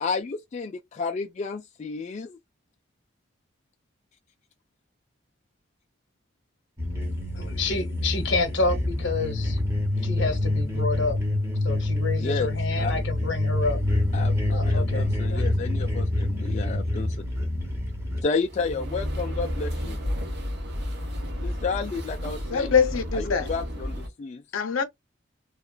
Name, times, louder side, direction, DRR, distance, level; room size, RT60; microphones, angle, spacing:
voice 1, 0.0-2.4 12.2-12.5 12.8-12.9 14.1-17.2 18.2-20.0 21.4-22.7 23.1-24.4, left 4 dB, 35° left, 0.3 m, -31 dB
sound 1, 6.8-18.2, left 1 dB, 10° right, 0.7 m, -26 dB
voice 2, 7.3-9.6 10.0-11.2 11.6-13.8 14.5-15.4, left 3 dB, 60° left, 0.8 m, -29 dB
sound 2, 18.3-24.1, equal, 55° right, 0.9 m, -32 dB
voice 3, 22.5-23.5 24.5-24.8, left 6 dB, 85° left, 0.6 m, -23 dB
2.9 x 2.3 x 2.3 m
head